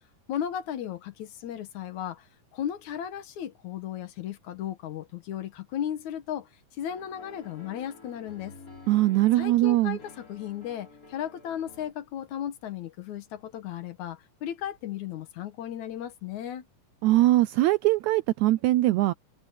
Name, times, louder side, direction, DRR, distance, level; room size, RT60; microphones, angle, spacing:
voice 1, 0.3-8.6 9.3-16.7, left 10 dB, 65° left, 2.4 m, -35 dB
sound 1, 6.9-11.9, left 3 dB, 25° left, 5.1 m, -50 dB
voice 2, 8.9-10.0 17.0-19.1, right 16 dB, 85° right, 1.7 m, -21 dB
omnidirectional pair, 3.9 m